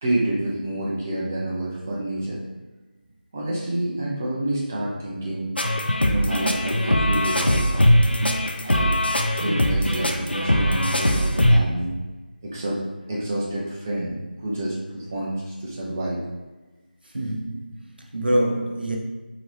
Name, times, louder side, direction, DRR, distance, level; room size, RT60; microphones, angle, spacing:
voice 1, 0.0-2.4 3.3-5.5 6.0-7.9 8.6-9.0 9.3-12.0 12.4-12.8 13.1-16.2, right 1 dB, 15° right, -5 dB, 0.5 m, -28 dB
sound 1, 5.6-11.6, equal, 80° left, 0.5 m, -21 dB
voice 2, 17.1-19.0, right 1 dB, 70° right, 0 dB, 0.7 m, -25 dB
3.8 x 2.8 x 3.0 m, 1.2 s
figure-of-eight pair, 165°, 5 cm